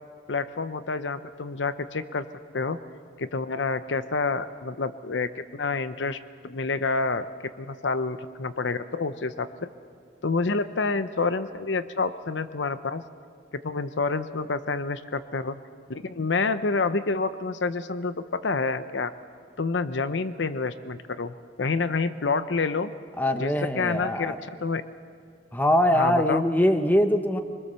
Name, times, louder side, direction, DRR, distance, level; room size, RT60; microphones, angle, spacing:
voice 1, 0.3-2.2 2.5-2.8 3.2-6.2 6.4-7.2 7.6-9.7 10.2-13.0 13.5-15.6 15.9-19.1 19.6-22.9 23.3-24.8 25.9-26.5, left 4 dB, 75° left, 12 dB, 0.7 m, -28 dB
voice 2, 23.2-24.4 25.5-27.4, equal, 10° left, 7 dB, 1.0 m, -22 dB
24.0 x 21.0 x 6.9 m, 2.3 s
head